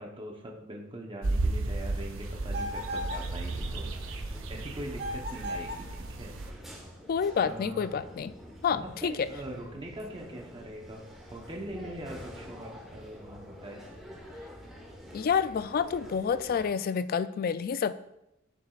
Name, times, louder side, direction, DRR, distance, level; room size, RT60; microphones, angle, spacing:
voice 1, 0.0-3.9 4.5-6.3 7.4-7.9 8.7-13.8, right 1 dB, 25° right, 0 dB, 0.9 m, -42 dB
sound 1, 1.2-6.5, right 2 dB, 75° right, 0.7 m, -34 dB
sound 2, 2.5-3.3 4.9-5.9, equal, 55° right, 1.8 m, -36 dB
sound 3, 2.6-16.7, equal, ahead, 1.2 m, -48 dB
voice 2, 7.1-8.3 8.6-9.3 15.1-18.0, left 6 dB, 45° left, 14 dB, 0.3 m, -28 dB
9.1 x 7.0 x 2.4 m, 0.85 s
head